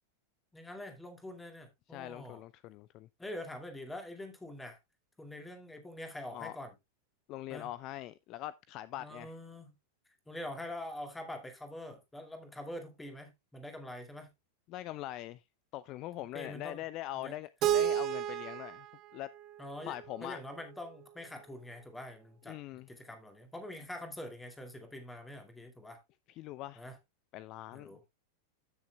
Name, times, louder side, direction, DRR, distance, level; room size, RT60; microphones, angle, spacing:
voice 1, 0.5-2.4 3.2-4.8 5.2-6.7 7.5-7.7 9.0-9.8 10.3-14.3 16.3-16.8 17.2-17.3 19.6-20.0 20.2-22.6 22.9-26.0 26.8-27.0 27.7-28.0, left 1 dB, 10° left, 2.4 m, -45 dB
voice 2, 1.9-3.1 6.3-6.6 7.3-9.3 14.7-15.4 15.7-18.9 19.1-19.3 19.8-20.4 22.5-22.9 26.3-26.8 27.3-28.0, left 15 dB, 40° left, 0.4 m, -42 dB
Keyboard (musical), 17.6-20.5, right 11 dB, 35° right, 0.8 m, -33 dB
15.5 x 6.6 x 2.3 m
figure-of-eight pair, 90°, 0 cm